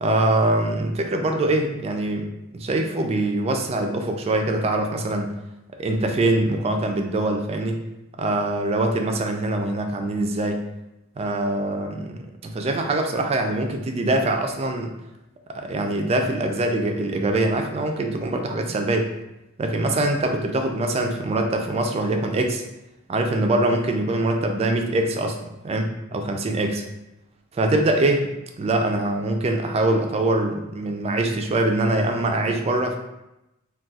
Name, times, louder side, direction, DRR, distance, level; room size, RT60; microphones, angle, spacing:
voice 1, 0.0-2.3 2.5-5.3 5.8-7.8 8.2-10.6 11.2-14.9 15.5-19.1 19.6-22.6 23.1-25.4 25.6-26.8 27.5-28.3 28.6-33.0, right 2 dB, 30° right, 4 dB, 0.3 m, -23 dB
2.3 x 2.2 x 3.9 m, 0.91 s
head